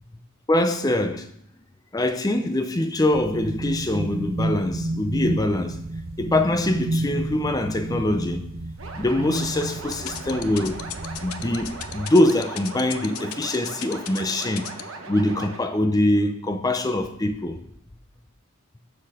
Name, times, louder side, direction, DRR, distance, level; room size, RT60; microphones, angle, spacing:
voice 1, 0.5-1.3 1.9-5.8 6.2-8.5 9.0-10.8 11.2-17.6, left 1 dB, 15° left, 0.5 m, -23 dB
sound 1, 3.1-12.0, right 1 dB, 40° right, 0.4 m, -31 dB
sound 2, 8.8-15.6, right 3 dB, 65° right, 1.0 m, -39 dB
sound 3, 9.9-14.8, left 13 dB, 80° left, 0.5 m, -34 dB
6.6 x 5.9 x 4.9 m
head